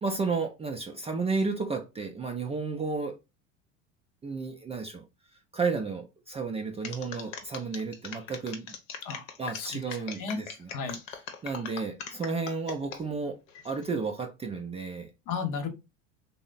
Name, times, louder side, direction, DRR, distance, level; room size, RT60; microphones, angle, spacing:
voice 1, 0.0-3.2 4.2-5.0 5.5-8.7 9.4-11.0 11.4-13.4 13.6-15.1, right 4 dB, 15° right, 0.4 m, -32 dB
sound 1, 6.8-13.0 13.5-13.9, left 6 dB, 80° left, 0.8 m, -40 dB
voice 2, 15.3-15.7, left 5 dB, 55° left, 1.0 m, -33 dB
3.1 x 2.0 x 3.8 m
hypercardioid pair, 80°, 38 cm